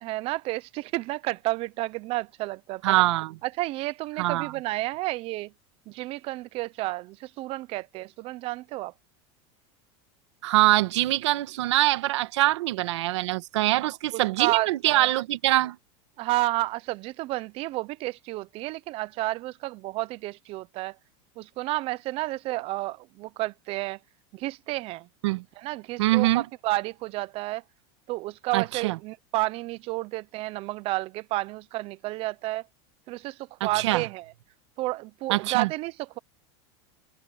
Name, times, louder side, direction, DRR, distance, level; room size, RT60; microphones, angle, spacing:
voice 1, 0.0-3.0 3.4-5.5 5.9-8.9 14.1-15.1 16.2-20.9 21.4-24.0 24.3-25.1 25.6-27.6 28.1-32.6 33.1-33.4 33.6-34.2 34.8-36.2, right 19 dB, 40° right, 0.7 m, -31 dB
voice 2, 2.8-3.4 4.2-4.5 10.4-15.8 25.2-25.4 26.0-26.4 28.5-29.0 33.6-34.0 35.3-35.7, right 17 dB, 85° right, 1.9 m, -24 dB
supercardioid pair, 150°, 14 cm